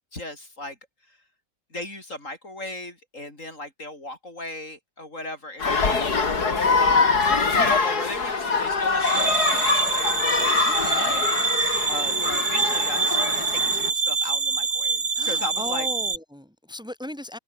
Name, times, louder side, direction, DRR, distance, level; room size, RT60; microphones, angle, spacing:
voice 1, 0.1-0.8 1.1-1.2 1.7-6.0 6.8-11.2 11.5-15.9, left 1 dB, 45° left, 6.0 m, -36 dB
sound 1, 5.6-13.9, left 4 dB, 60° left, 3.4 m, -24 dB
sound 2, 9.0-16.2, right 4 dB, 90° right, 3.8 m, -25 dB
voice 2, 10.6-11.1 15.1-17.4, left 1 dB, ahead, 4.6 m, -36 dB
omnidirectional pair, 1.9 m